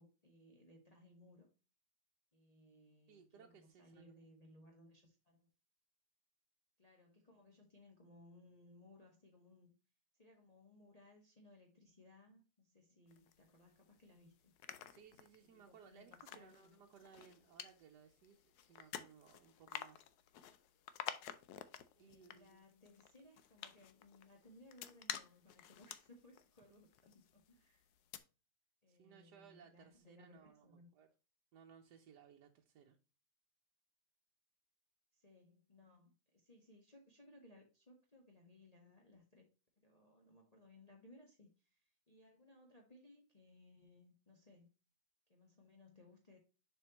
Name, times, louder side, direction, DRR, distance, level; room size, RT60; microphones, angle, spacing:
voice 1, 0.0-1.5 2.3-5.5 6.8-9.7 10.1-14.5 15.4-16.8 21.9-27.9 28.8-30.9 35.1-39.5 39.8-44.7 45.3-46.4, left 1 dB, 25° left, 1.2 m, -64 dB
voice 2, 3.1-4.1 14.8-20.0 22.0-22.6 26.7-26.8 28.9-31.1 31.5-33.0, right 7 dB, 85° right, 1.3 m, -62 dB
sound 1, 13.1-14.0 14.4-27.6 27.9-28.2, left 10 dB, 75° left, 1.2 m, -51 dB
6.8 x 5.2 x 2.9 m
omnidirectional pair, 1.8 m